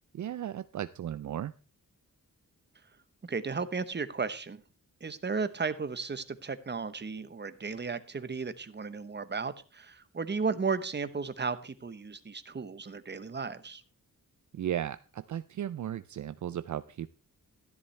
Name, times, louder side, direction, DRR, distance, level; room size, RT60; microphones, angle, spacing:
voice 1, 0.1-1.5 14.5-17.1, right 10 dB, 65° right, 14 dB, 0.4 m, -35 dB
voice 2, 3.3-4.6 5.0-13.8, right 4 dB, 35° right, 13 dB, 0.9 m, -34 dB
13.0 x 11.0 x 3.2 m, 0.34 s
wide cardioid pair, 100°, 32 cm